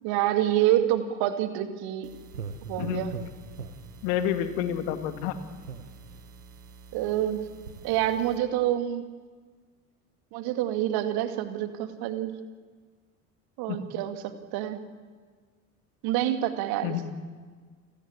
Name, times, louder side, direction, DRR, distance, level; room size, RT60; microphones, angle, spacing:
voice 1, 0.0-2.1 2.7-3.1 6.9-7.4 7.8-9.0 10.3-12.3 13.6-14.8 16.0-17.1, right 12 dB, 55° right, 9 dB, 2.5 m, -27 dB
sound 1, 2.0-8.4, right 5 dB, 80° right, 1.8 m, -43 dB
voice 2, 4.0-5.3 13.7-13.9 16.8-17.1, left 10 dB, 55° left, 9 dB, 2.3 m, -29 dB
29.5 x 19.0 x 8.4 m, 1.5 s
figure-of-eight pair, 65°, 45 cm